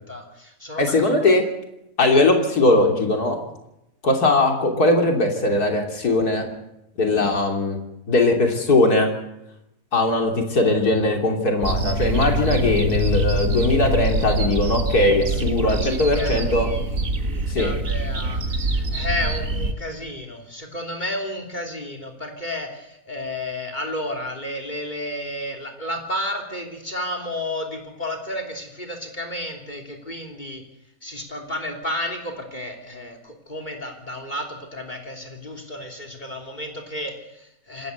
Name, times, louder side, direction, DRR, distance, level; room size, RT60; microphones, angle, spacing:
voice 1, 0.0-1.2 15.3-30.6 31.0-37.9, left 1 dB, 30° left, 5 dB, 3.4 m, -32 dB
voice 2, 0.8-1.4 2.0-3.4 4.0-6.5 7.0-7.8 8.1-9.1 9.9-16.7 17.5-17.7, left 2 dB, 85° left, 3 dB, 3.6 m, -20 dB
sound 1, 11.6-19.7, right 1 dB, 60° right, 2.2 m, -24 dB
27.0 x 13.5 x 8.2 m, 0.86 s
omnidirectional pair, 1.6 m